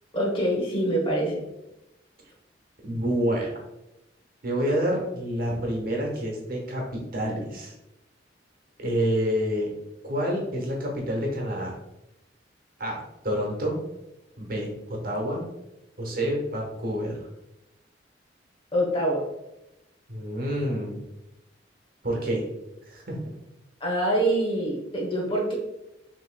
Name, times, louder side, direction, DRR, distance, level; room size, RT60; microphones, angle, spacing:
voice 1, 0.1-1.4 18.7-19.2 23.8-25.5, right 1 dB, 30° left, -1 dB, 1.0 m, -25 dB
voice 2, 2.8-3.5 4.4-7.7 8.8-9.7 10.0-11.7 12.8-13.8 14.4-15.4 16.0-17.3 20.1-21.0 22.0-22.4 22.9-23.2, equal, 50° right, -1 dB, 1.2 m, -28 dB
6.4 x 3.0 x 2.3 m, 0.90 s
head